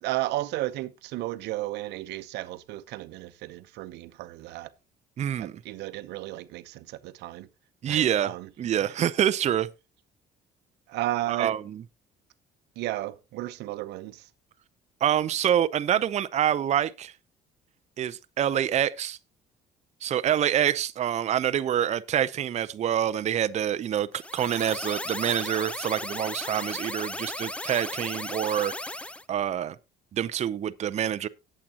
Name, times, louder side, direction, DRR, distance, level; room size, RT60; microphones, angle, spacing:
voice 1, 0.0-4.7 5.4-7.5 7.9-8.5 8.8-8.9 10.9-11.6 12.8-14.2, right 16 dB, 85° right, 0.8 m, -33 dB
voice 2, 5.2-5.5 7.8-9.7 11.3-11.8 15.0-17.1 18.0-19.2 20.0-28.7 29.3-29.8 30.1-31.3, right 10 dB, 40° right, 0.6 m, -26 dB
sound 1, 24.1-29.2, left 1 dB, 5° left, 0.5 m, -36 dB
18.5 x 7.5 x 2.9 m
cardioid pair, 110°, 17 cm